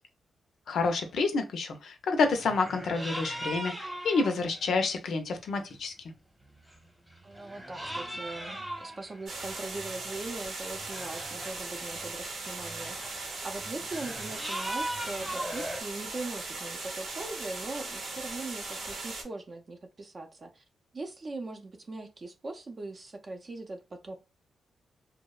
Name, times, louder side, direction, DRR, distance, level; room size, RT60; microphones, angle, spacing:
voice 1, 0.7-5.9, left 4 dB, 75° left, 0.5 m, -28 dB
sound 1, 2.2-4.8 5.7-5.8 6.6-6.8 7.1-10.2 10.7-11.5 11.9-15.8, right 1 dB, 5° right, 0.9 m, -39 dB
voice 2, 7.2-13.2 13.4-20.6 20.9-24.2, right 2 dB, 40° right, 0.5 m, -40 dB
sound 2, 9.3-19.2, right 3 dB, 75° right, 0.8 m, -39 dB
2.7 x 2.0 x 2.3 m
cardioid pair, 75°, 0 cm